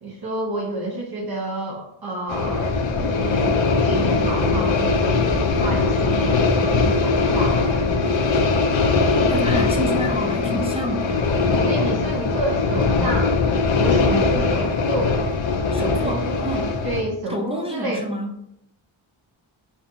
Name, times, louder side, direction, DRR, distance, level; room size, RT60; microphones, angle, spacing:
voice 1, 0.0-2.7 3.0-8.0 11.7-13.3 13.8-15.2 15.8-16.4 16.8-18.1, right 2 dB, 50° right, -1 dB, 0.8 m, -29 dB
sound 1, 2.3-17.0, left 4 dB, 65° left, 0.6 m, -21 dB
voice 2, 9.3-11.4 15.7-16.7 17.3-18.3, equal, 15° right, 0 dB, 0.3 m, -28 dB
5.8 x 2.7 x 2.6 m, 0.77 s
wide cardioid pair, 155°, 49 cm